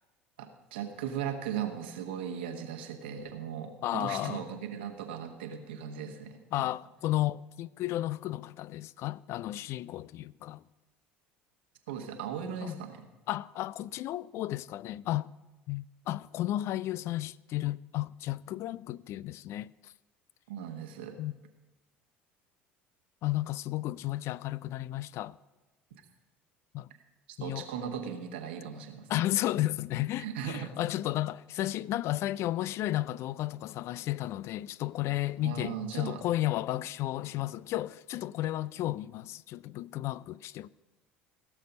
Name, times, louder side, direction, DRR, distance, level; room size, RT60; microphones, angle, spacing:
voice 1, 0.4-6.7 11.9-13.1 20.5-21.2 27.4-29.1 30.2-30.8 35.4-36.2, right 8 dB, 75° right, 1.3 m, -38 dB
voice 2, 3.8-4.4 6.5-10.6 12.6-12.8 13.3-15.3 15.7-19.9 21.2-21.3 23.2-25.4 26.7-26.9 27.4-27.7 29.1-40.7, left 15 dB, 55° left, 0.3 m, -33 dB
16.5 x 6.8 x 5.3 m
hypercardioid pair, 65°, 6 cm